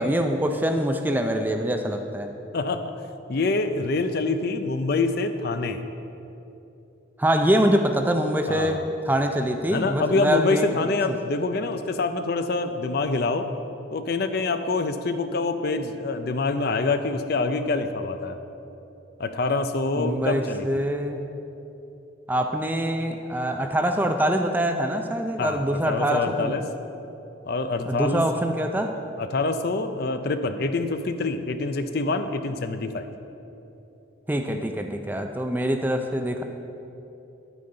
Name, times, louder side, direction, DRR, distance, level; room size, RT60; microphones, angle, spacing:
voice 1, 0.0-2.3 7.2-8.8 9.1-10.7 19.9-21.2 22.3-26.6 27.9-29.0 34.3-36.4, right 1 dB, 10° right, 5 dB, 0.4 m, -24 dB
voice 2, 2.5-2.9 3.3-5.8 8.5-8.9 9.7-13.5 13.9-18.4 19.2-20.7 25.4-26.6 27.4-28.2 29.2-33.1, left 3 dB, 50° left, 9 dB, 0.5 m, -26 dB
10.0 x 9.0 x 3.9 m, 2.9 s
head